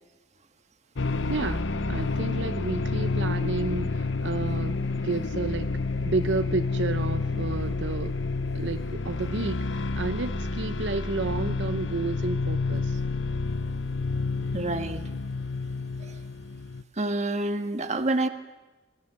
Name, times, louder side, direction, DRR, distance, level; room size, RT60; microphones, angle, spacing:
sound 1, 1.0-16.8, left 3 dB, 90° left, 0.9 m, -29 dB
voice 1, 1.3-5.8 6.0-8.1 8.5-13.0, right 3 dB, 75° right, 9 dB, 0.8 m, -31 dB
voice 2, 14.5-15.0 16.0-16.2 17.0-18.3, right 2 dB, 40° right, 7 dB, 1.6 m, -28 dB
26.5 x 20.5 x 7.4 m, 1.2 s
head